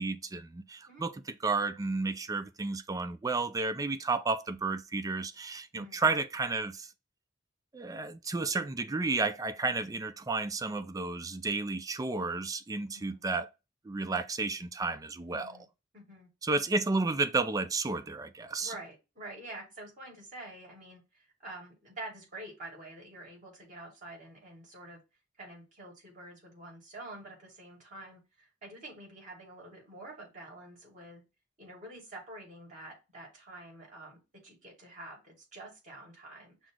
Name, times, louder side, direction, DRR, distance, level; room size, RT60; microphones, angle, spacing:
voice 1, 0.0-6.9 7.7-13.5 13.8-15.6 16.4-18.7, right 3 dB, 20° right, 0.4 m, -32 dB
voice 2, 15.3-15.6 15.9-16.3 18.6-25.0 25.4-31.2 31.6-36.7, right 2 dB, 45° right, 2.4 m, -47 dB
6.1 x 2.0 x 3.7 m
head